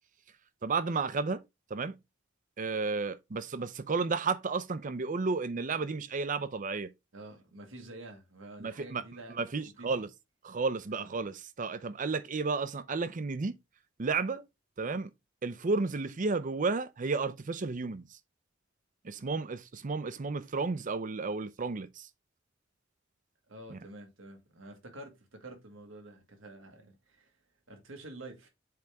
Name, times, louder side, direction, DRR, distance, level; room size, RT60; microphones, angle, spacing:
voice 1, 0.6-1.4 1.7-1.9 2.6-6.9 8.6-9.0 9.4-10.1 10.4-13.5 14.0-14.5 14.8-15.1 15.4-18.1 19.0-22.1 23.7-23.8, right 4 dB, 40° right, 0.6 m, -32 dB
voice 2, 7.1-9.9 10.9-11.1 11.6-11.8 23.5-27.3 27.7-28.5, right 2 dB, 90° right, 1.8 m, -48 dB
7.8 x 3.5 x 3.4 m
head